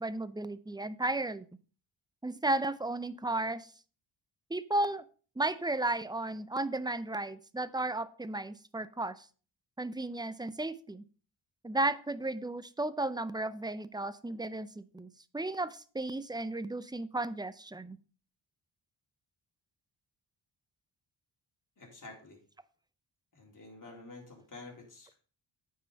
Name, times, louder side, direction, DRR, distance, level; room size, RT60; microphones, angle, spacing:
voice 1, 0.0-1.5 2.2-3.7 4.5-5.0 5.4-9.3 9.8-11.0 11.6-18.0, right 2 dB, 10° right, 14 dB, 0.5 m, -34 dB
voice 2, 21.8-22.4 23.3-25.2, left 3 dB, 40° left, 0 dB, 3.8 m, -49 dB
9.4 x 5.8 x 5.2 m, 0.39 s
cardioid pair, 90°, 46 cm